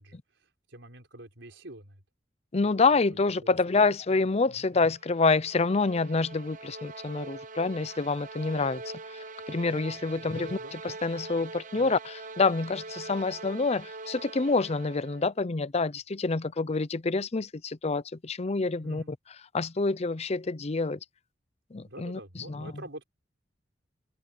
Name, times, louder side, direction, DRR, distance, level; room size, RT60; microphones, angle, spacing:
voice 1, 0.0-2.0 3.1-4.0 4.5-4.7 10.1-10.8 11.7-12.0 18.8-19.1 21.8-23.0, right 1 dB, 75° right, 5.1 m, -47 dB
voice 2, 2.5-8.8 9.1-10.5 10.8-19.2 19.5-21.0 21.7-22.2 22.5-22.7, left 3 dB, 35° left, 0.6 m, -27 dB
sound 1, 4.8-15.3, right 3 dB, 45° right, 0.8 m, -43 dB
head